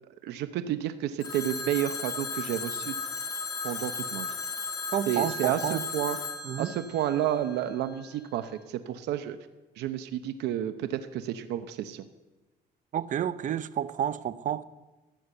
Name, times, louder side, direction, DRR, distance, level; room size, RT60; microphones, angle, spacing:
voice 1, 0.2-3.0 3.6-4.3 5.1-6.2 6.6-9.4 9.8-12.1, right 11 dB, 85° right, 0.8 m, -31 dB
Telephone, 1.2-8.0, left 4 dB, 20° left, 2.7 m, -36 dB
voice 2, 4.9-5.8 6.4-6.7 12.9-14.6, right 10 dB, 50° right, 0.7 m, -30 dB
15.0 x 9.8 x 7.8 m
cardioid pair, 110°, 17 cm